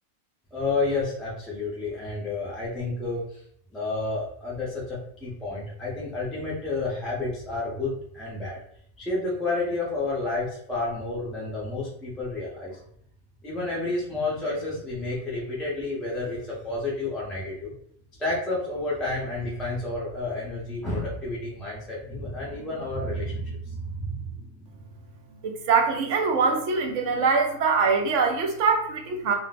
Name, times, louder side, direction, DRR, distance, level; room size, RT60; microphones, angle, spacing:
voice 1, 0.5-3.4 3.7-8.6 9.0-12.8 13.4-17.7 18.2-24.4, left 2 dB, ahead, -6 dB, 0.5 m, -30 dB
voice 2, 25.7-29.3, right 5 dB, 65° right, 3 dB, 0.8 m, -23 dB
2.6 x 2.1 x 4.0 m, 0.66 s
omnidirectional pair, 1.5 m